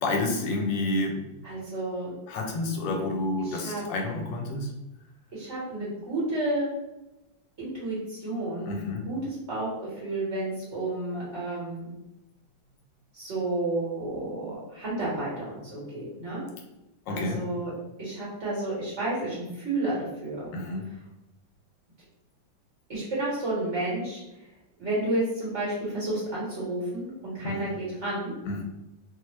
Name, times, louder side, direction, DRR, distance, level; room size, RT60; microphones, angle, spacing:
voice 1, 0.0-1.3 2.3-4.7 8.7-9.1 17.1-17.4 20.5-20.9 27.4-27.8 28.5-28.6, left 2 dB, 80° left, 1 dB, 1.2 m, -29 dB
voice 2, 1.4-2.1 3.4-3.8 5.3-6.7 7.6-9.7 10.0-11.9 13.1-16.4 17.1-17.7 18.0-20.0 20.2-20.5 22.9-24.2 24.8-28.3, right 2 dB, 45° right, -7 dB, 1.1 m, -31 dB
3.0 x 2.0 x 3.1 m, 0.95 s
omnidirectional pair, 2.0 m